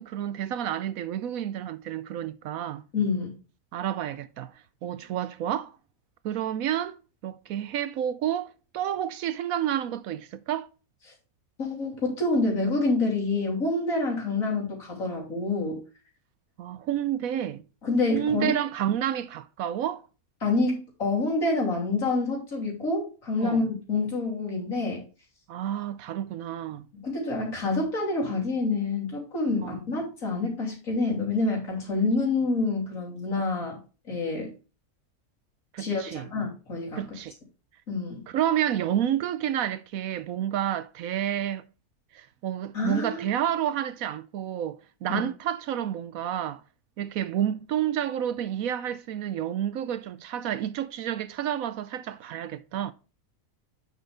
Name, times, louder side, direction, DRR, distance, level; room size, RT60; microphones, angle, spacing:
voice 1, 0.0-2.8 3.7-4.5 4.8-5.7 6.2-7.0 7.2-10.7 16.6-17.6 18.1-20.0 23.4-23.7 25.5-26.9 29.6-29.8 35.7-36.3 37.0-37.3 38.3-41.7 42.1-46.6 47.0-52.9, right 10 dB, 75° right, 1.0 m, -30 dB
voice 2, 2.9-3.4 11.6-15.8 17.8-18.5 20.4-25.0 26.9-33.8 34.1-34.5 35.8-37.1 37.9-38.2 42.7-43.2 45.1-45.2, left 3 dB, 60° left, 3.4 m, -27 dB
9.0 x 6.3 x 3.4 m
omnidirectional pair, 1.6 m